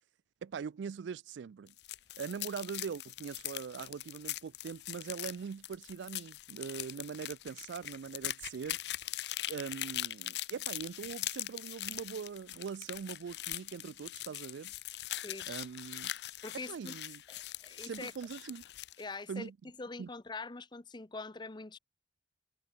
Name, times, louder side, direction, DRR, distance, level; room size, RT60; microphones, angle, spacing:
voice 1, 0.4-1.7 2.2-8.8 9.5-14.7 15.5-16.1 16.7-17.2 17.8-18.6 19.3-19.5 20.0-20.1, right 6 dB, 90° right, 0.4 m, -42 dB
sound 1, 1.7-19.0, left 14 dB, 65° left, 0.6 m, -41 dB
voice 2, 15.2-15.7 16.4-16.9 17.3-18.1 19.0-19.5 19.8-21.8, left 3 dB, 25° left, 0.8 m, -44 dB
head